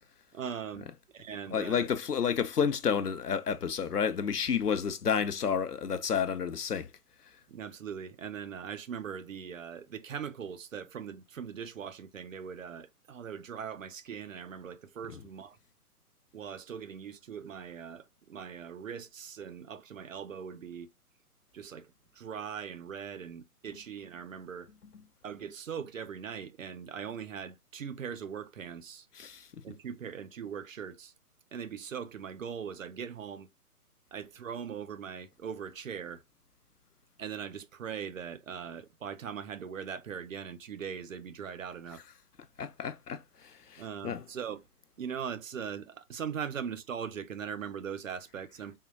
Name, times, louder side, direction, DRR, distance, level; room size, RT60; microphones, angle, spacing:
voice 1, 0.3-1.9 7.5-15.6 16.3-20.9 21.5-24.7 25.2-29.1 29.6-31.1 31.5-33.5 34.1-36.2 37.2-42.0 43.8-44.6 45.0-48.8, right 7 dB, 60° right, 0.5 m, -40 dB
voice 2, 1.5-6.9 15.1-15.2 29.1-29.5 42.6-44.2, left 7 dB, 80° left, 0.7 m, -30 dB
3.6 x 2.2 x 2.6 m
figure-of-eight pair, 130°, 46 cm